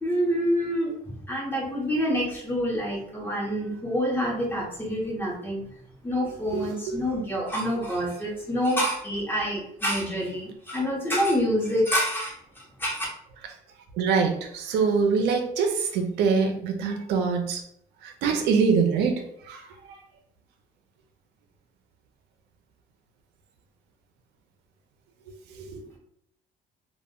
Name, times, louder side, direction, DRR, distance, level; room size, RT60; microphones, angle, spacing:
voice 1, 0.0-5.6 6.0-12.3 12.8-13.0, equal, 10° left, -3 dB, 1.0 m, -27 dB
voice 2, 6.5-7.0 14.0-17.6 18.0-20.0 25.6-25.9, right 5 dB, 85° right, 5 dB, 0.5 m, -25 dB
2.2 x 2.0 x 3.5 m, 0.69 s
cardioid pair, 110°, 17 cm